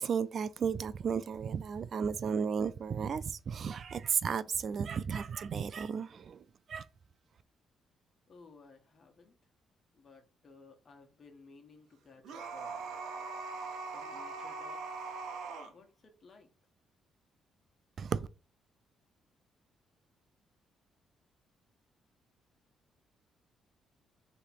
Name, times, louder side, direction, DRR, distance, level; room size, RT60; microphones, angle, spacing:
voice 1, 0.0-6.8 18.0-18.3, right 6 dB, 55° right, 0.4 m, -34 dB
voice 2, 8.3-9.4 9.9-12.9 13.8-15.2 15.6-16.5, left 4 dB, 45° left, 1.3 m, -58 dB
sound 1, 12.2-15.7, right 4 dB, 85° right, 0.8 m, -41 dB
3.2 x 2.9 x 4.4 m
cardioid pair, 90°, 0 cm